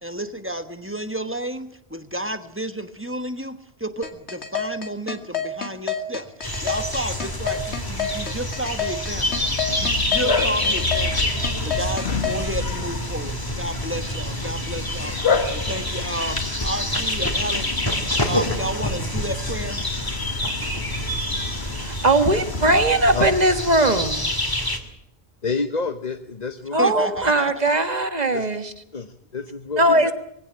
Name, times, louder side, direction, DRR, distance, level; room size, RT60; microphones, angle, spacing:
voice 1, 0.0-9.4 9.8-11.3 11.6-15.1 15.5-17.8 18.2-19.8 26.8-27.5 29.9-30.1, right 1 dB, 10° right, 9 dB, 1.2 m, -31 dB
sound 1, 4.0-12.4, left 7 dB, 90° left, 2.3 m, -28 dB
sound 2, 6.4-24.8, left 1 dB, 20° left, 2.4 m, -27 dB
Bark, 9.1-23.5, left 4 dB, 75° left, 1.8 m, -31 dB
voice 2, 21.7-24.3 26.7-28.7 29.8-30.1, right 1 dB, 40° right, 9 dB, 1.7 m, -19 dB
voice 3, 25.4-26.9 28.3-28.5 28.9-30.1, left 4 dB, 40° left, 8 dB, 1.1 m, -28 dB
21.0 x 16.5 x 8.5 m, 0.78 s
omnidirectional pair, 1.1 m